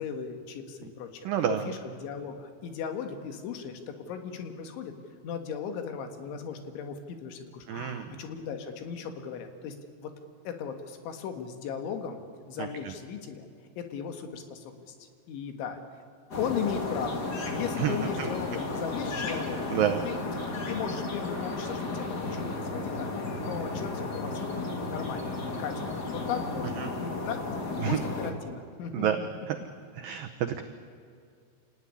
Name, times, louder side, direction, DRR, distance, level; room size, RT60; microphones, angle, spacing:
voice 1, 0.0-4.9 5.2-9.8 10.0-10.1 10.5-12.2 12.5-13.5 13.8-15.8 16.4-17.3 17.5-19.7 20.0-20.2 20.5-29.3, left 7 dB, 80° left, 7 dB, 4.1 m, -37 dB
voice 2, 1.3-1.6 7.7-8.1 12.6-12.7 17.8-18.3 19.7-20.0 26.8-26.9 27.8-28.0 28.9-29.2 29.5-29.6 30.0-30.6, right 10 dB, 75° right, 6 dB, 2.1 m, -28 dB
sound 1, 16.3-28.3, left 3 dB, 45° left, 1.3 m, -34 dB
27.0 x 18.0 x 10.0 m, 2.3 s
omnidirectional pair, 5.4 m